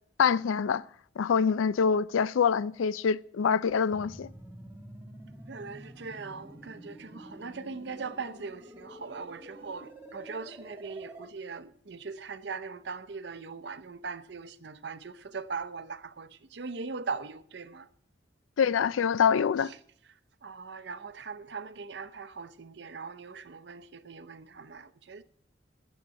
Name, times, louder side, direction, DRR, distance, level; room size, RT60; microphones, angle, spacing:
voice 1, 0.2-0.8 1.2-4.3 18.6-19.7, left 6 dB, 90° left, 0.4 m, -25 dB
sound 1, 3.9-11.3, right 1 dB, 10° right, 1.5 m, -48 dB
voice 2, 5.5-17.9 19.7-19.8 20.4-25.2, right 4 dB, 60° right, 0.6 m, -40 dB
9.4 x 7.4 x 8.4 m
head